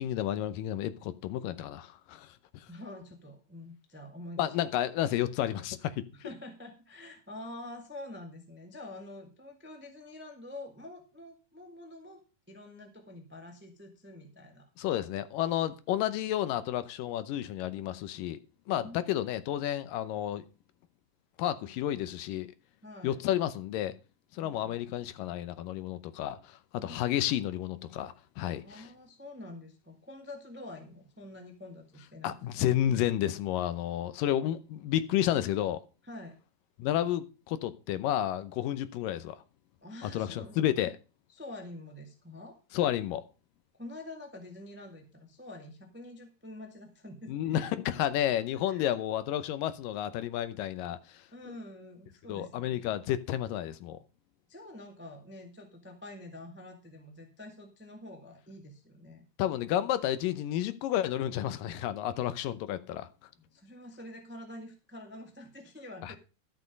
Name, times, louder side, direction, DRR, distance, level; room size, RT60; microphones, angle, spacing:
voice 1, 0.0-2.7 4.4-6.3 14.8-18.4 18.7-20.4 21.4-22.5 23.0-24.0 24.3-28.9 32.2-35.8 36.8-39.4 40.0-40.9 42.7-43.2 47.3-51.2 52.3-54.0 59.4-63.1 66.0-66.2, left 12 dB, 80° left, 2.4 m, -31 dB
voice 2, 2.7-4.5 6.1-12.2 12.5-14.7 18.8-19.0 22.8-23.2 26.7-27.2 28.6-32.6 36.0-36.4 39.8-40.9 41.3-42.6 43.8-47.7 48.7-48.8 51.3-52.8 54.5-59.2 63.4-66.2, left 1 dB, 15° right, 0.4 m, -47 dB
12.5 x 6.7 x 5.2 m
omnidirectional pair, 3.9 m